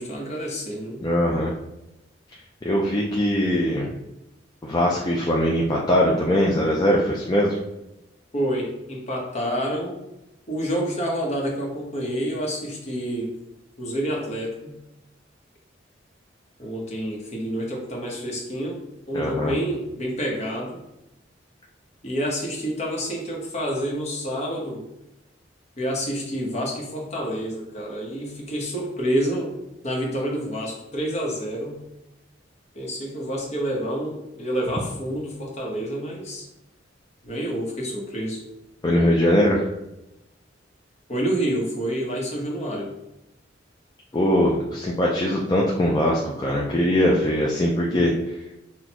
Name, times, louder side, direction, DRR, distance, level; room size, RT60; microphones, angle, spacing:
voice 1, 0.0-1.0 8.3-10.0 10.5-13.3 13.8-14.8 16.6-18.8 19.1-20.8 22.0-24.8 25.8-29.5 29.8-31.8 32.7-36.5 37.2-38.4 41.1-42.9, equal, 35° left, -2 dB, 1.1 m, -28 dB
voice 2, 1.0-1.5 2.6-3.9 4.6-7.6 19.1-19.5 38.8-39.7 44.1-48.1, equal, 20° left, -3 dB, 0.5 m, -21 dB
6.0 x 2.4 x 2.9 m, 0.92 s
head